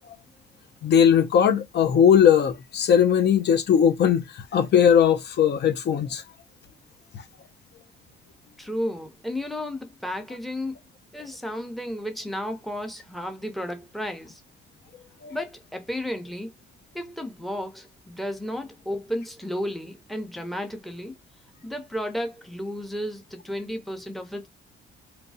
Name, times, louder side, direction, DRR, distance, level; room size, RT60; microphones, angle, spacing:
voice 1, 0.8-6.2 15.2-15.3, left 8 dB, 60° left, 0.6 m, -19 dB
voice 2, 8.6-10.8 11.1-14.4 15.3-16.5 16.9-21.1 21.6-24.5, equal, ahead, 0.8 m, -33 dB
3.1 x 2.2 x 2.7 m
cardioid pair, 90°, 20 cm